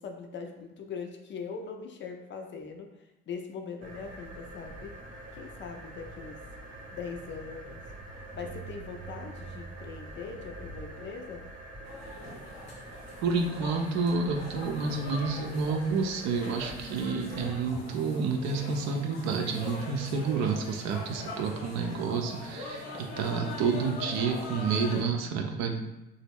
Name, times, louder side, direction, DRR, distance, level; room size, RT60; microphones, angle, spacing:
voice 1, 0.0-5.0 5.3-6.4 6.9-7.9 8.3-11.5, left 5 dB, 40° left, 4 dB, 0.4 m, -41 dB
sound 1, 3.8-17.9, right 2 dB, 25° right, 0.9 m, -45 dB
sound 2, 11.8-25.0, left 2 dB, 85° left, 0.8 m, -42 dB
voice 2, 13.2-25.8, right 4 dB, 60° right, 3 dB, 0.5 m, -29 dB
3.0 x 2.0 x 3.5 m, 1.0 s
hypercardioid pair, 65°, 31 cm